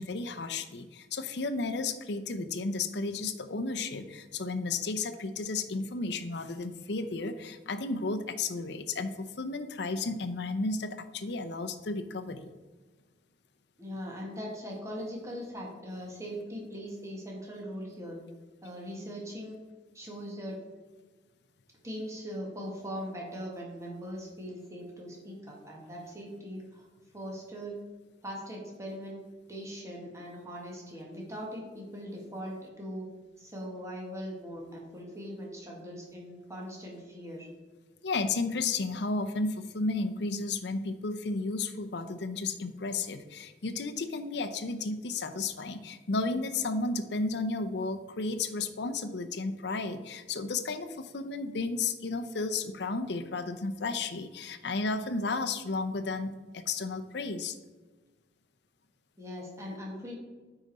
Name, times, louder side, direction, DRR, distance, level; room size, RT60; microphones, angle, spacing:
voice 1, 0.0-12.5 38.0-57.5, left 3 dB, 65° left, 9 dB, 0.7 m, -33 dB
voice 2, 13.8-18.2 18.6-19.6 19.9-20.6 21.8-26.9 27.1-27.8 28.2-29.2 29.5-33.1 33.4-37.5 59.2-60.1, equal, 15° right, -2 dB, 1.9 m, -40 dB
9.1 x 4.9 x 4.2 m, 1.3 s
head